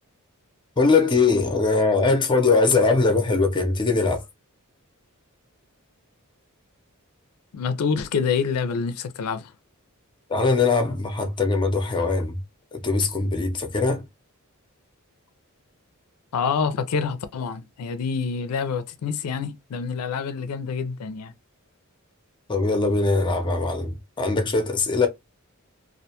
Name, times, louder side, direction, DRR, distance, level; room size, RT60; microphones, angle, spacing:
voice 1, 0.8-4.2 10.3-12.4 12.7-14.0 22.5-25.1, left 3 dB, 20° left, 0.5 m, -21 dB
voice 2, 7.5-9.5 16.3-21.3, left 5 dB, 85° left, 0.4 m, -27 dB
2.4 x 2.2 x 2.7 m
head